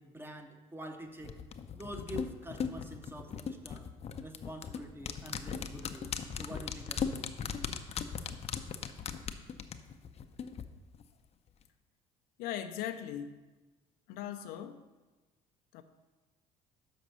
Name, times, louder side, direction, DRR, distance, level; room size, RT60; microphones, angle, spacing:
voice 1, 0.0-1.4 1.7-3.9 4.2-6.1 6.4-7.3, right 1 dB, 15° right, 1.0 m, -46 dB
sound 1, 1.2-10.6 10.9-11.0, left 7 dB, 40° left, 0.6 m, -38 dB
voice 2, 12.4-13.4 14.1-14.8 15.7-15.8, left 10 dB, 75° left, 0.6 m, -39 dB
6.2 x 5.1 x 6.8 m
supercardioid pair, 80°, 16 cm